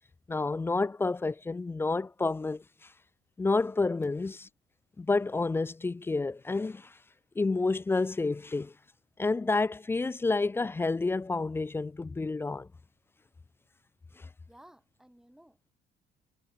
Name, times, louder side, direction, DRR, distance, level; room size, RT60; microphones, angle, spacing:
voice 1, 0.3-2.6 3.4-4.4 5.0-6.9 7.4-8.7 9.2-12.7, left 3 dB, 15° left, 0.3 m, -29 dB
voice 2, 14.5-15.7, right 1 dB, 5° right, 5.6 m, -57 dB
cardioid pair, 110°, 17 cm